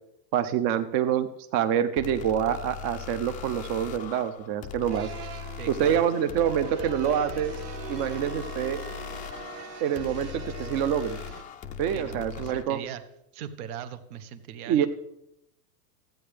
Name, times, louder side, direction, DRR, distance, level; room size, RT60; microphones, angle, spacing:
voice 1, 0.3-5.1 5.7-7.5 7.9-8.8 9.8-11.2 11.8-12.8 14.7-14.9, right 9 dB, 45° right, 9 dB, 0.7 m, -26 dB
sound 1, 2.0-12.6, left 9 dB, 20° left, 0.4 m, -40 dB
sound 2, 4.9-11.4, right 6 dB, 90° right, 1.4 m, -41 dB
voice 2, 5.6-6.0 11.9-13.0 13.3-14.9, right 9 dB, 65° right, 11 dB, 1.0 m, -39 dB
13.5 x 8.9 x 3.4 m, 0.82 s
hypercardioid pair, 120°, 47 cm